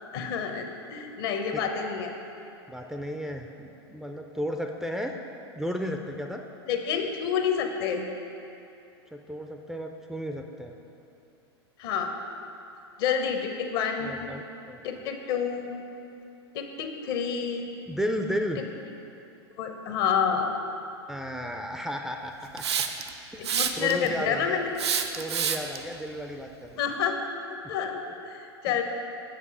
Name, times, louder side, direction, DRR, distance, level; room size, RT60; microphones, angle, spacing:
voice 1, 0.1-2.1 6.7-8.1 11.8-12.1 13.0-14.2 14.8-15.8 16.5-17.7 18.6-18.7 19.6-20.6 23.4-24.7 26.8-27.2 27.7-28.8, left 7 dB, 60° left, 4 dB, 0.9 m, -28 dB
voice 2, 2.7-5.1 5.6-6.4 9.1-10.8 14.0-14.9 17.9-18.6 21.1-22.8 23.3-24.6 25.2-26.8, equal, 5° right, 2 dB, 0.4 m, -34 dB
Hiss, 22.6-23.1 23.4-24.1 24.8-25.8, right 8 dB, 85° right, 0.5 m, -27 dB
7.5 x 5.4 x 4.8 m, 2.8 s
hypercardioid pair, 105°, 14 cm